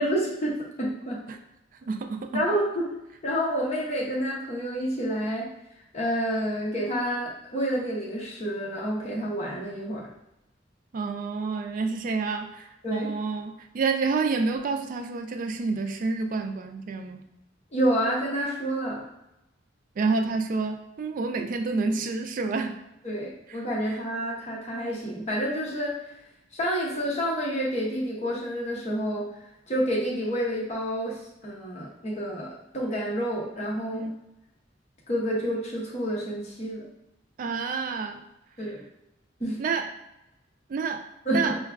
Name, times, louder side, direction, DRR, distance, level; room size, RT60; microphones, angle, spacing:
voice 1, 0.0-1.2 2.3-2.9 3.2-5.5 5.9-10.1 12.8-13.1 17.7-19.0 23.0-26.0 26.5-29.3 29.7-34.1 35.1-36.8 38.6-38.8 39.4-39.6 41.3-41.6, equal, 35° left, -3 dB, 0.8 m, -29 dB
voice 2, 1.9-2.4 10.9-17.2 20.0-22.8 23.9-24.0 33.9-34.2 37.4-38.2 39.6-39.9 40.7-41.5, right 4 dB, 45° right, 6 dB, 0.3 m, -29 dB
4.6 x 2.3 x 2.4 m, 0.89 s
head